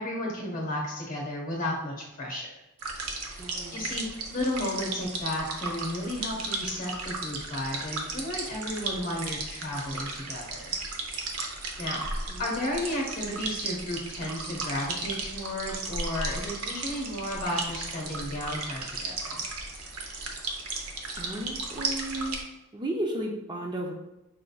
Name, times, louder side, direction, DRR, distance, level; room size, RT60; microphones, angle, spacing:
voice 1, 0.0-2.5 3.7-4.1 4.3-10.7 11.8-12.0 12.4-19.4, left 1 dB, 40° left, -1 dB, 1.4 m, -33 dB
sound 1, 2.8-22.4, right 3 dB, 80° right, 0.8 m, -35 dB
voice 2, 3.4-3.8 12.3-12.5 21.1-22.3 22.7-23.9, right 1 dB, 20° right, 0 dB, 0.5 m, -34 dB
5.7 x 3.7 x 2.3 m, 0.95 s
head